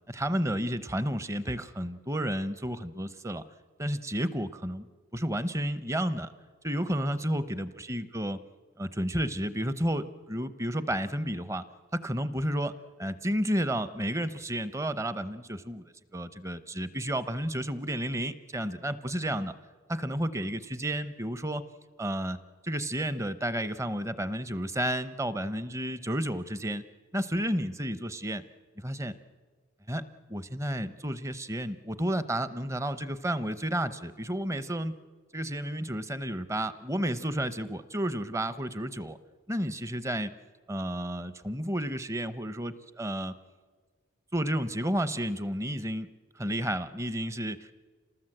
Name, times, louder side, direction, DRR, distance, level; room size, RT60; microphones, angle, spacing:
voice 1, 0.1-3.4 3.8-4.9 5.1-6.3 6.6-8.4 8.8-11.6 11.9-12.7 13.0-19.5 19.9-21.6 22.0-22.4 22.6-26.8 27.1-28.4 28.8-29.2 29.9-30.0 30.3-35.0 35.3-39.2 39.5-40.3 40.7-43.3 44.3-46.1 46.4-47.7, equal, 15° right, 13 dB, 0.8 m, -31 dB
27.5 x 19.5 x 7.8 m, 1.5 s
head